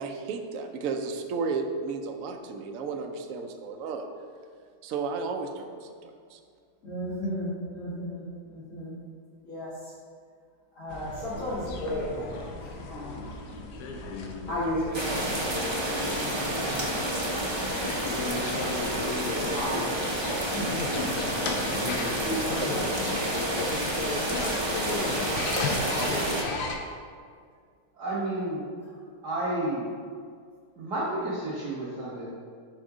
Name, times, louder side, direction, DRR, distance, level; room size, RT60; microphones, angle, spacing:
voice 1, 0.0-4.1 4.8-6.4, right 4 dB, 65° right, 5 dB, 0.8 m, -33 dB
voice 2, 6.8-9.0 9.4-9.7 10.8-13.2 14.5-18.0 18.7-20.7 20.9-22.9 23.3-25.0 25.8-26.2, equal, 50° left, -10 dB, 2.0 m, -36 dB
sound 1, 10.9-26.8, left 3 dB, 90° left, 1.3 m, -36 dB
sound 2, 14.9-26.4, right 1 dB, 45° right, 0.3 m, -29 dB
voice 3, 27.9-28.6 29.2-29.9 30.8-32.3, right 1 dB, 85° right, -9 dB, 2.0 m, -31 dB
6.2 x 3.7 x 4.9 m, 2.1 s
omnidirectional pair, 1.7 m